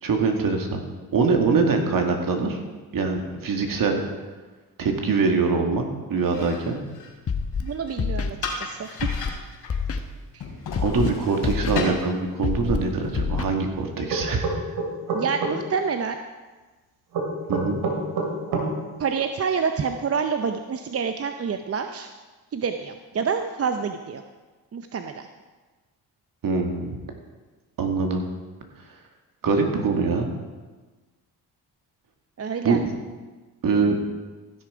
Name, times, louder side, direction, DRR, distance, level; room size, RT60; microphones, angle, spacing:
voice 1, 0.0-0.8 1.1-2.6 2.9-4.0 4.8-5.8 6.1-6.8 10.8-14.5 17.5-17.8 26.4-27.0 27.8-28.2 29.4-30.3 32.6-32.8 33.6-34.0, right 4 dB, 60° right, 3 dB, 2.1 m, -23 dB
sound 1, 6.1-13.6, left 4 dB, 70° left, 3.1 m, -35 dB
Scratching (performance technique), 7.3-7.6 8.0-8.3 9.0-9.3 9.7-10.0 10.7-11.1 11.4-11.8 12.4-12.8 13.1-13.4, left 6 dB, 35° left, 1.1 m, -26 dB
voice 2, 7.6-9.1 10.3-10.4 15.1-16.2 19.0-22.1 22.5-24.2 24.7-25.3 32.4-32.8, right 6 dB, 40° right, 7 dB, 0.7 m, -27 dB
sound 2, 14.1-15.5 17.1-18.7, right 4 dB, 75° right, 2.5 m, -26 dB
15.0 x 6.7 x 5.0 m, 1.3 s
supercardioid pair, 70°, 38 cm